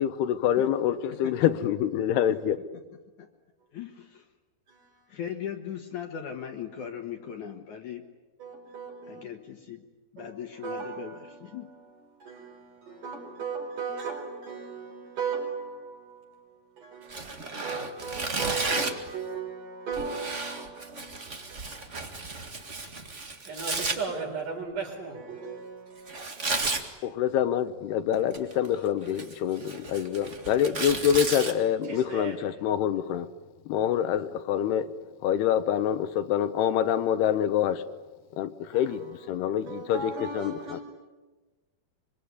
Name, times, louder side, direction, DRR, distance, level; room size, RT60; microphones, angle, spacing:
voice 1, 0.0-2.6 27.0-33.3 33.7-34.9 35.2-37.8 38.4-39.0 39.3-40.8, left 10 dB, 80° left, 3.0 m, -26 dB
voice 2, 1.1-1.5 2.3-2.4 3.2-3.3 3.7-4.2 5.1-8.0 9.1-9.8 10.1-11.7, left 9 dB, 60° left, 2.5 m, -38 dB
voice 3, 4.7-5.1 8.4-9.2 10.2-22.2 23.4-27.1 31.8-32.5 38.7-40.8, right 5 dB, 55° right, 6.0 m, -38 dB
Tearing, 17.1-19.1 19.9-24.0 26.1-26.8 28.1-28.7 29.0-31.5, right 3 dB, 35° right, 1.2 m, -33 dB
25.5 x 24.5 x 9.6 m
omnidirectional pair, 4.6 m